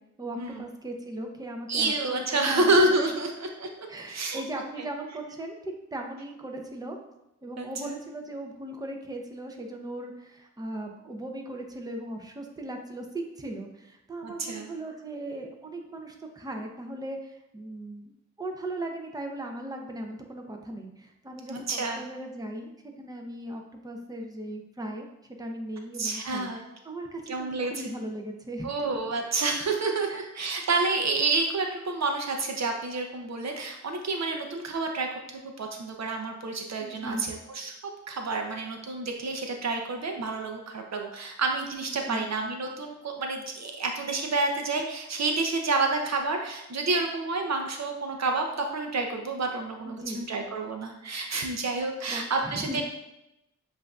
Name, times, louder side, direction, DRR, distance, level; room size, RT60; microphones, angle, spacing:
voice 1, 0.2-2.8 3.9-7.0 7.4-18.1 18.4-25.1 25.4-26.5 26.8-28.7 30.1-30.3 36.8-37.2 42.0-42.3 49.8-50.3 52.1-52.8, right 1 dB, 10° right, 2 dB, 0.6 m, -38 dB
voice 2, 1.7-3.3 3.6-4.4 7.6-7.9 14.2-14.7 21.5-22.0 26.0-26.6 27.3-27.9 28.6-37.7 38.1-52.8, right 3 dB, 60° right, 3 dB, 0.6 m, -29 dB
7.4 x 2.6 x 2.3 m, 0.91 s
cardioid pair, 60°, 30 cm